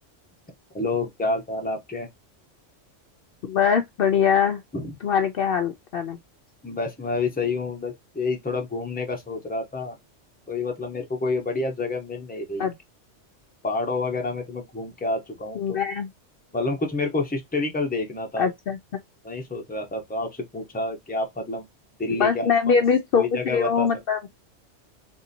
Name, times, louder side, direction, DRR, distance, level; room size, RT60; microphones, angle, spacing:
voice 1, 0.7-2.1 4.7-4.9 6.6-10.0 10.5-12.7 13.6-15.8 16.5-18.5 19.2-21.7 22.0-22.7 23.2-23.9, left 3 dB, 10° left, 0.7 m, -28 dB
voice 2, 3.4-4.6 5.0-6.2 12.6-12.7 15.6-16.1 18.4-18.8 22.2-24.3, left 7 dB, 60° left, 0.6 m, -22 dB
3.6 x 2.7 x 2.6 m
omnidirectional pair, 1.3 m